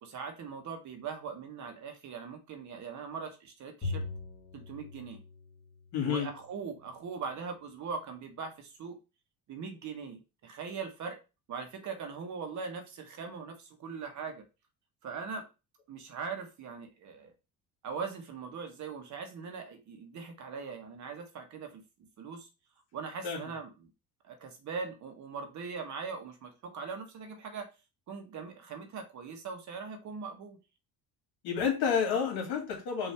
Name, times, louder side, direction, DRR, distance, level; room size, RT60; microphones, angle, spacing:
voice 1, 0.0-4.0 4.5-5.2 6.0-9.0 9.5-11.2 11.5-14.4 15.0-15.5 15.9-17.3 17.8-21.8 22.2-22.5 22.9-23.9 24.2-27.7 28.1-30.6, right 5 dB, 45° right, 5 dB, 1.0 m, -41 dB
Bowed string instrument, 3.8-6.4, left 3 dB, 30° left, 1.6 m, -40 dB
voice 2, 5.9-6.3 23.2-23.4 31.4-33.1, left 7 dB, 75° left, 1 dB, 2.2 m, -30 dB
5.5 x 2.6 x 3.3 m, 0.29 s
cardioid pair, 150°, 39 cm